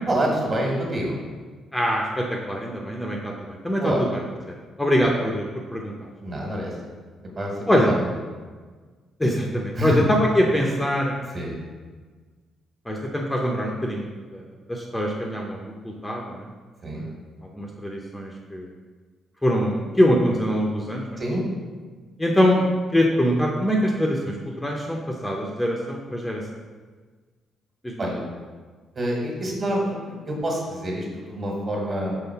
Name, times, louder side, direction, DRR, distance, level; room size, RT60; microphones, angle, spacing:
voice 1, 0.1-1.2 3.8-4.0 5.0-5.1 6.2-6.7 7.4-8.0 9.8-10.0 11.3-11.6 16.8-17.1 21.2-21.5 28.0-28.2 28.9-32.2, right 1 dB, 35° right, -1 dB, 1.6 m, -27 dB
voice 2, 1.7-4.2 4.8-5.4 5.7-6.1 7.7-7.9 9.2-11.1 12.9-14.4 14.7-16.5 16.9-17.1 17.4-18.7 19.4-21.2 22.2-26.4 27.8-28.1, equal, 10° left, -1 dB, 0.6 m, -23 dB
5.6 x 3.7 x 5.7 m, 1.4 s
cardioid pair, 135°, 0 cm